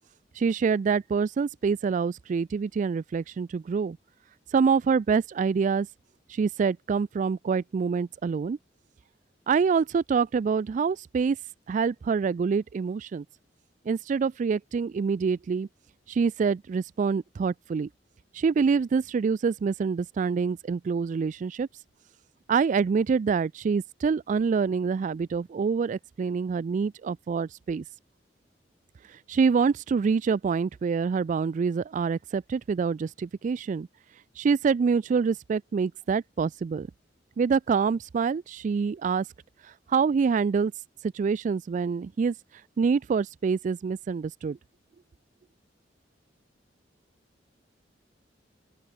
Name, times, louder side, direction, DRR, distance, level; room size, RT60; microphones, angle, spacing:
voice 1, 0.3-4.0 4.5-5.9 6.3-8.6 9.5-11.4 11.7-13.2 13.9-15.7 16.1-17.9 18.3-21.7 22.5-27.8 29.1-33.9 34.4-36.9 37.4-39.3 39.6-40.7 41.1-42.3 42.8-44.6, right 5 dB, 45° right, 0.3 m, -26 dB
open air
head